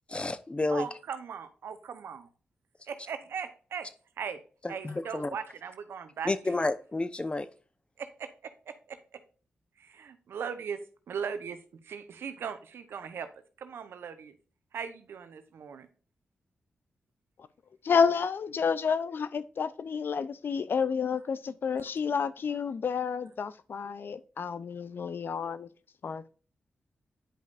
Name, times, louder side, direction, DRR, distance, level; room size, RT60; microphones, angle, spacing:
voice 1, 0.1-0.9 4.6-5.3 6.2-7.5, left 2 dB, 30° left, 0.8 m, -30 dB
voice 2, 0.7-2.3 2.9-3.9 4.2-4.4 4.7-6.5 8.0-9.2 9.8-10.8 11.1-11.6 11.8-13.3 13.6-14.3 14.7-15.9, right 7 dB, 80° right, 0.9 m, -39 dB
voice 3, 17.8-25.7 26.0-26.3, left 6 dB, 65° left, 0.5 m, -30 dB
10.0 x 5.3 x 2.5 m
cardioid pair, 50°, 4 cm